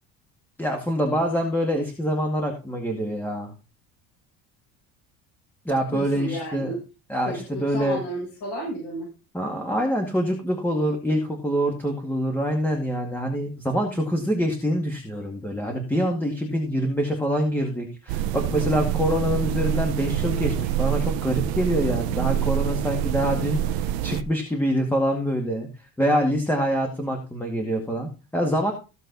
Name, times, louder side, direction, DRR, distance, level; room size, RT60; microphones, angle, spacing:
voice 1, 0.6-3.5 5.7-6.8 7.1-8.0 9.3-25.7 26.0-28.7, equal, 5° left, 2 dB, 2.1 m, -25 dB
voice 2, 5.9-6.8 7.2-7.4 7.7-9.1, equal, 50° left, -5 dB, 7.6 m, -32 dB
sound 1, 18.1-24.2, right 11 dB, 75° right, 1.1 m, -26 dB
16.0 x 6.8 x 4.1 m, 0.31 s
cardioid pair, 140°, 38 cm